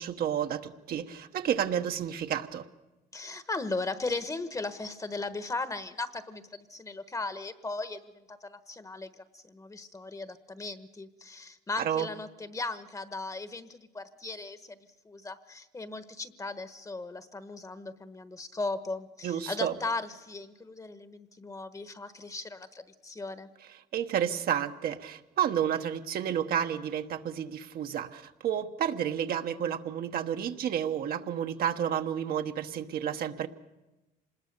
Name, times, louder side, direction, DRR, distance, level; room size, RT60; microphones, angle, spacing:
voice 1, 0.0-2.6 11.8-12.1 19.2-19.7 23.9-33.5, right 9 dB, 60° right, 7 dB, 1.2 m, -31 dB
voice 2, 3.1-14.8 15.0-23.5, left 3 dB, 20° left, 12 dB, 1.2 m, -37 dB
26.0 x 20.5 x 6.8 m, 1.1 s
cardioid pair, 110°, 17 cm